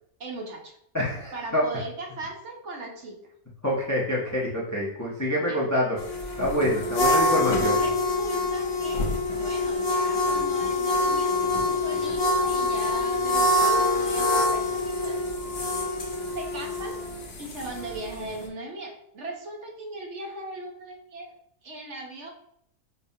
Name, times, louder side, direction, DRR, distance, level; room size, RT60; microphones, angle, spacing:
voice 1, 0.2-0.8 1.3-3.2 5.5-5.7 6.9-7.2 7.6-15.2 16.3-17.0 17.4-21.3 21.6-22.3, right 2 dB, 60° right, 0 dB, 1.0 m, -38 dB
voice 2, 0.9-1.6 3.6-6.0 6.4-7.8, left 1 dB, 25° left, -4 dB, 0.3 m, -26 dB
sound 1, 6.0-18.4, left 2 dB, 60° left, 0.7 m, -25 dB
5.2 x 2.2 x 2.7 m, 0.72 s
omnidirectional pair, 1.5 m